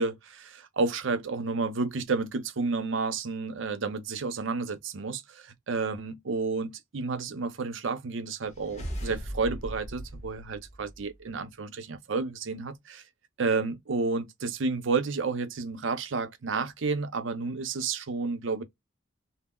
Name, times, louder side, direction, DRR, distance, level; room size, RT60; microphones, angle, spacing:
voice 1, 0.0-13.0 13.4-18.6, right 4 dB, 70° right, 0.6 m, -31 dB
sound 1, 8.5-11.2, equal, 35° left, 1.0 m, -39 dB
3.6 x 2.0 x 2.3 m
head